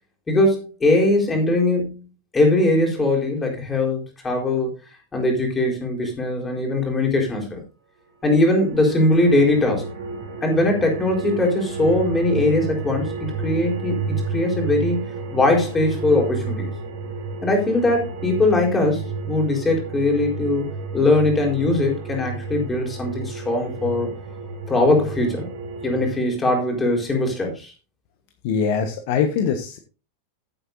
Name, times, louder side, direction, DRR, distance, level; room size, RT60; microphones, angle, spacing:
voice 1, 0.3-2.1 2.3-4.7 5.1-7.6 8.2-9.9 10.4-15.0 15.3-16.7 17.4-24.1 24.7-25.5 25.8-27.7, left 2 dB, 15° left, 1 dB, 4.2 m, -21 dB
sound 1, 8.3-26.2, right 3 dB, 55° right, 2.7 m, -31 dB
voice 2, 28.4-29.8, left 6 dB, 50° left, 8 dB, 1.2 m, -22 dB
15.0 x 8.0 x 2.7 m, 0.32 s
figure-of-eight pair, 90°, 0 cm